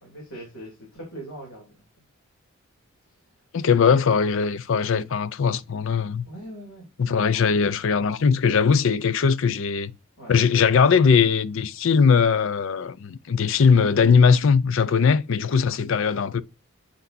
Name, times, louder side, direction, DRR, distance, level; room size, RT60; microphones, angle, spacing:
voice 1, 0.0-1.8 3.1-3.7 6.3-6.9 7.2-7.4 10.2-10.4 14.9-15.0 15.5-15.7, right 1 dB, 85° left, 3.0 m, -42 dB
voice 2, 3.5-6.3 7.0-9.9 10.3-16.4, left 6 dB, 65° left, 0.4 m, -20 dB
8.3 x 5.9 x 2.6 m
head